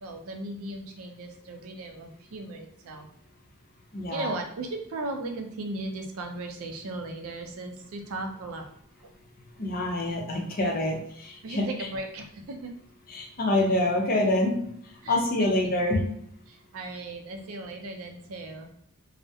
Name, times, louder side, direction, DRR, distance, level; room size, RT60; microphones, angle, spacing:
voice 1, 0.0-3.1 4.1-8.7 9.0-9.1 11.4-12.7 15.0-15.7 16.5-18.7, right 2 dB, 70° right, 3 dB, 0.4 m, -37 dB
voice 2, 3.9-4.3 9.6-11.6 13.1-14.6 15.1-16.0, left 1 dB, 40° left, 0 dB, 0.5 m, -26 dB
2.3 x 2.0 x 2.6 m, 0.71 s
head